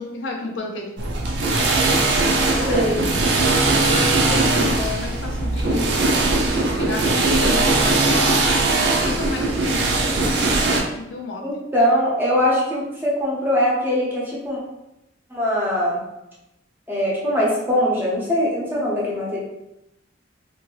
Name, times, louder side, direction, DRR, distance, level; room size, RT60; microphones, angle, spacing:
voice 1, 0.0-2.0 2.4-3.4 3.8-8.3 8.7-10.4 10.9-11.5, left 3 dB, 75° left, 1 dB, 0.5 m, -32 dB
sound 1, 1.0-10.8, right 2 dB, 60° right, 0.5 m, -20 dB
voice 2, 2.6-3.0 11.4-14.6 15.3-16.0 16.9-19.4, equal, 10° right, -5 dB, 0.8 m, -21 dB
2.7 x 2.6 x 3.0 m, 0.87 s
head